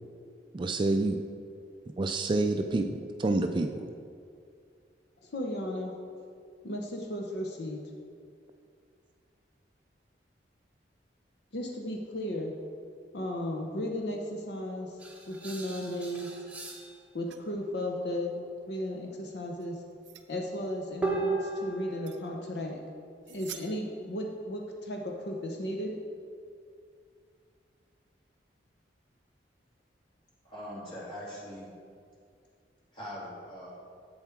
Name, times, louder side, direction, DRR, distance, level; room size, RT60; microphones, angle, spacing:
voice 1, 0.5-1.2 2.0-3.9, right 2 dB, 25° right, 6 dB, 0.3 m, -28 dB
voice 2, 5.2-5.9 6.6-7.8 11.5-12.5 13.1-15.0 15.3-16.3 17.1-18.4 18.7-19.7 20.3-22.8 23.3-25.9, left 1 dB, 65° left, 1 dB, 0.8 m, -35 dB
sound 1, 15.0-17.0 21.0-22.4, right 3 dB, 10° right, 0.9 m, -35 dB
sound 2, 17.2-17.5 19.6-20.3 22.1-22.2 22.6-22.7 23.3-24.1, right 10 dB, 75° right, 0.5 m, -47 dB
voice 3, 30.4-31.7 32.9-33.7, equal, 30° left, -6 dB, 2.4 m, -41 dB
8.0 x 7.2 x 4.5 m, 2.3 s
head